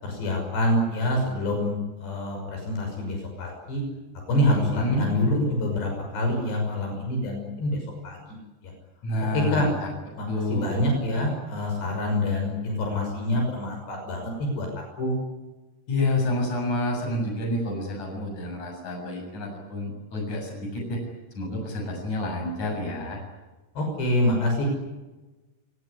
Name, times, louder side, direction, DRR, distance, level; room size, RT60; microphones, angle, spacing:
voice 1, 0.0-3.8 4.3-8.2 8.6-8.7 9.3-9.7 10.2-15.1 23.8-24.7, left 1 dB, 65° left, 2 dB, 8.1 m, -26 dB
voice 2, 4.5-5.1 9.0-9.9 10.3-10.8 15.9-21.0 21.3-23.2, left 2 dB, 40° left, 2 dB, 8.6 m, -29 dB
29.0 x 18.5 x 9.8 m, 1.2 s
omnidirectional pair, 5.3 m